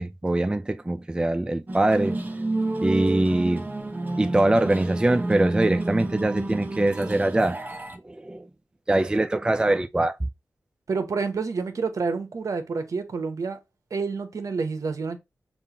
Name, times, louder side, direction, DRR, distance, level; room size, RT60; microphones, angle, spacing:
voice 1, 0.0-2.2 2.8-3.7 4.2-7.6 8.0-8.5 8.9-10.2, right 2 dB, 15° right, 0.4 m, -23 dB
sound 1, 1.7-8.0, right 2 dB, 30° right, 0.9 m, -29 dB
voice 2, 10.9-13.6 13.9-15.2, right 4 dB, 65° right, 0.8 m, -28 dB
5.3 x 2.5 x 2.8 m
cardioid pair, 55°, 6 cm